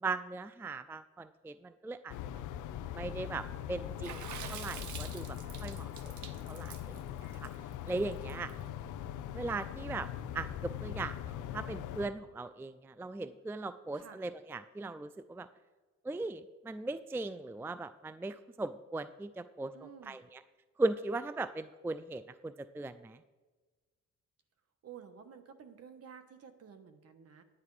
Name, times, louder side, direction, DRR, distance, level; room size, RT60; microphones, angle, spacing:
voice 1, 0.0-2.1 2.9-5.9 6.5-7.0 7.4-7.5 7.9-8.5 9.3-10.1 10.3-15.5 16.0-19.7 20.0-20.4 20.8-23.2, right 3 dB, 10° right, 13 dB, 0.3 m, -38 dB
sound 1, 2.1-12.1, left 10 dB, 85° left, 0.6 m, -41 dB
Water / Splash splatter, 4.0-8.5, right 8 dB, 75° right, 0.9 m, -46 dB
voice 2, 8.2-8.9 13.9-14.2 19.7-20.2 24.8-27.4, right 7 dB, 55° right, 8 dB, 1.3 m, -53 dB
9.7 x 9.6 x 4.8 m, 1.3 s
cardioid pair, 90°, 30 cm